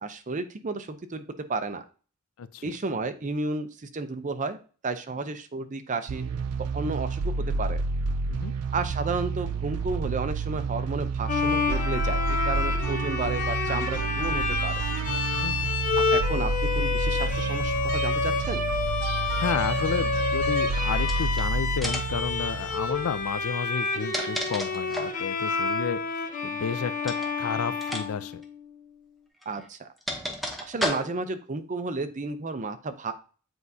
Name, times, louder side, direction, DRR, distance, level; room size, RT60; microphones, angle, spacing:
voice 1, 0.0-1.2 1.5-1.8 2.6-4.6 4.8-6.2 6.7-7.8 8.7-14.8 16.1-18.6 29.5-29.9 30.7-33.1, right 3 dB, 35° right, 9 dB, 0.6 m, -32 dB
voice 2, 2.4-2.7 8.3-8.5 15.4-15.7 19.4-28.4, left 6 dB, 70° left, 15 dB, 0.4 m, -32 dB
sound 1, 6.1-23.4, right 4 dB, 80° right, 0.5 m, -29 dB
Bowed string instrument, 11.3-28.7, left 5 dB, 35° left, 0.9 m, -29 dB
sound 2, 21.0-21.4 21.8-22.2 23.7-25.2 27.0-27.3 27.8-28.1 28.3-28.4 29.4-31.4, equal, ahead, 0.9 m, -33 dB
7.9 x 4.7 x 2.7 m, 0.38 s
head